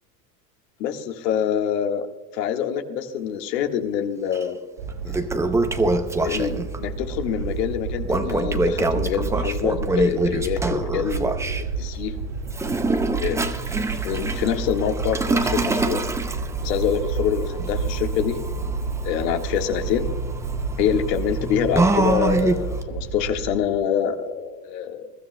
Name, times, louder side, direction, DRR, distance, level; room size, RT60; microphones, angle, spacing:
voice 1, 0.8-2.1 2.3-4.6 6.2-12.1 13.2-13.4 14.0-16.0 16.6-18.4 19.0-20.1 20.8-25.1, left 9 dB, 75° left, 5 dB, 1.7 m, -25 dB
Toilet flush, 4.3-4.4 4.9-6.8 8.0-11.6 12.5-22.8, right 2 dB, 5° right, 0.5 m, -25 dB
sound 1, 4.8-23.6, right 4 dB, 75° right, 3.4 m, -30 dB
22.0 x 13.0 x 2.2 m, 1.3 s
supercardioid pair, 115°, 49 cm